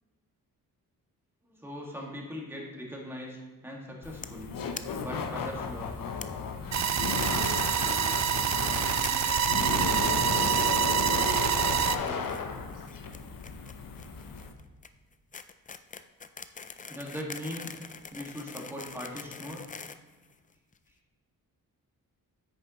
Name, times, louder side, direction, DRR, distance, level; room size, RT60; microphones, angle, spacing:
voice 1, 1.4-4.5 5.0-5.9 6.7-7.4 16.9-17.7 18.1-19.6, equal, 5° right, -2 dB, 1.8 m, -40 dB
Laughter, 4.0-14.5, left 5 dB, 70° left, 0.8 m, -35 dB
sound 1, 4.2-4.4 4.7-4.8 5.1-5.2 5.4-5.5 6.2-6.3 6.8-7.5 7.7-7.9 8.5-9.1 9.4-9.7 10.0-10.1 10.5-10.9 11.2-11.6 11.8-12.4 12.7-20.8, left 5 dB, 25° left, 0.4 m, -43 dB
sound 2, 6.7-12.0, right 8 dB, 50° right, 0.5 m, -26 dB
voice 2, 7.3-9.9 11.0-12.9, right 1 dB, 65° right, -3 dB, 2.4 m, -45 dB
8.8 x 6.7 x 3.0 m, 1.4 s
cardioid pair, 105°, 34 cm